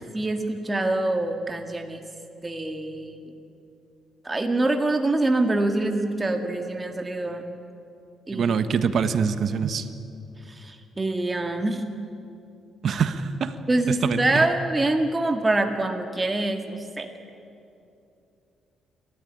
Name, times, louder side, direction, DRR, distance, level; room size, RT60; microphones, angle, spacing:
voice 1, 0.1-2.0 2.4-3.2 4.2-7.4 8.3-8.6 10.5-11.8 13.7-17.1, right 2 dB, 20° right, 5 dB, 1.9 m, -25 dB
voice 2, 8.3-9.9 12.8-13.5 13.9-14.5, right 6 dB, 60° right, 11 dB, 1.3 m, -24 dB
29.5 x 13.5 x 10.0 m, 2.7 s
cardioid pair, 90°, 0 cm